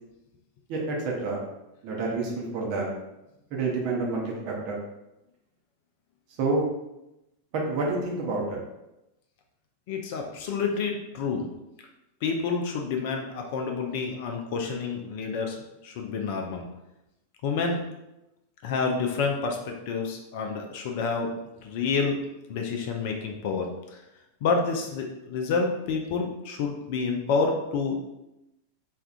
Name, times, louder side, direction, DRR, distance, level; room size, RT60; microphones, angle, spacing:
voice 1, 0.7-1.4 1.8-3.0 3.5-4.8 6.4-6.7 7.5-8.6, right 3 dB, 45° right, -2 dB, 0.8 m, -28 dB
voice 2, 9.9-11.5 12.2-15.6 15.8-16.7 17.4-17.8 18.6-21.3 21.6-22.2 22.5-24.0 24.4-28.1, left 4 dB, 50° left, 2 dB, 0.4 m, -28 dB
4.3 x 2.4 x 2.4 m, 0.91 s
figure-of-eight pair, 90°, 0 cm